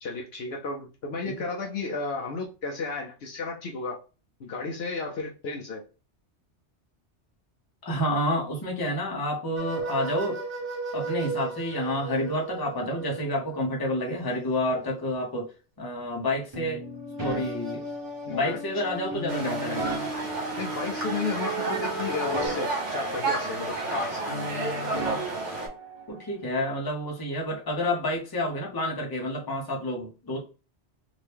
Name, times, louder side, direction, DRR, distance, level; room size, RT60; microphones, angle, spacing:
voice 1, 0.0-4.0 4.4-5.8 18.2-18.6 20.6-24.7, left 3 dB, 65° left, 0.8 m, -33 dB
voice 2, 7.8-10.4 10.9-15.5 15.8-16.8 17.2-17.8 18.3-19.8 26.1-30.4, left 1 dB, 20° left, 0.8 m, -29 dB
sound 1, 9.5-13.4 16.8-22.5, right 2 dB, 50° right, 1.3 m, -35 dB
sound 2, 16.5-18.5 19.1-21.4 21.7-24.0 24.3-26.3, right 1 dB, 20° right, 0.9 m, -38 dB
sound 3, 19.3-25.7, right 2 dB, 75° right, 1.4 m, -31 dB
2.9 x 2.6 x 3.4 m
omnidirectional pair, 1.2 m